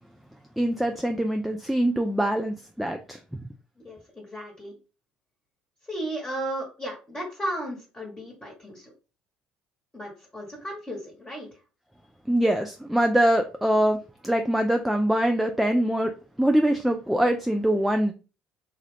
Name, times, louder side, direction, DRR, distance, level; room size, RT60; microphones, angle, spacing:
voice 1, 0.6-3.2 12.3-16.1 16.4-18.1, right 1 dB, ahead, 5 dB, 0.4 m, -23 dB
voice 2, 3.8-4.7 5.8-8.9 9.9-11.6, right 1 dB, 15° left, -2 dB, 1.2 m, -35 dB
2.8 x 2.4 x 3.3 m, 0.34 s
hypercardioid pair, 60°, 4 cm